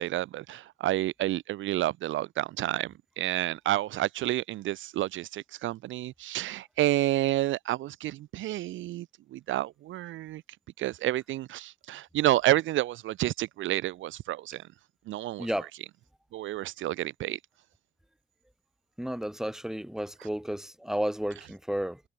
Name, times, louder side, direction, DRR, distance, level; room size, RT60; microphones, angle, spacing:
voice 1, 0.0-9.1 9.3-10.4 10.8-14.6 15.1-15.5 16.3-17.4, right 15 dB, 75° right, 0.6 m, -29 dB
voice 2, 19.0-22.0, equal, ahead, 1.9 m, -32 dB
cardioid pair, 90°, 20 cm